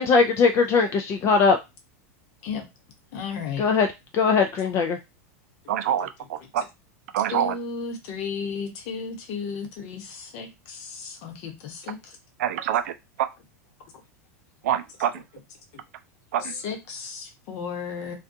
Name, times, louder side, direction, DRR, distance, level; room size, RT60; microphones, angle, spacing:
voice 1, 0.0-1.6 3.6-3.9 4.1-5.0, left 5 dB, 35° left, 0.3 m, -20 dB
voice 2, 3.1-3.7 6.6-6.7 7.3-12.2 15.7-15.8 16.4-18.2, left 5 dB, 55° left, 0.9 m, -34 dB
voice 3, 5.7-6.6 7.1-7.5 12.4-12.9 13.2-13.3 14.6-15.1 16.3-16.6, right 10 dB, 75° right, 0.4 m, -25 dB
2.4 x 2.3 x 2.6 m
hypercardioid pair, 115°, 8 cm